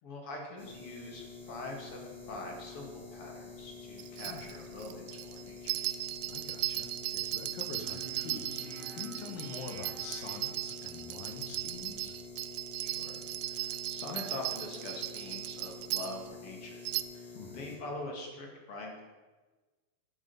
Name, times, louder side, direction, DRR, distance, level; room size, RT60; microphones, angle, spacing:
voice 1, 0.0-5.7 12.8-16.8 17.1-19.0, left 2 dB, 45° left, 1 dB, 2.6 m, -44 dB
sound 1, 0.6-17.8, left 4 dB, 25° left, 4.5 m, -48 dB
sound 2, 4.0-16.3 16.8-17.0, right 18 dB, 85° right, 2.3 m, -37 dB
voice 2, 6.3-12.1 17.3-17.7, left 5 dB, 75° left, 5 dB, 2.9 m, -45 dB
sound 3, 7.8-11.1, right 3 dB, 70° right, 3.1 m, -50 dB
11.5 x 10.0 x 5.5 m, 1.3 s
omnidirectional pair, 4.1 m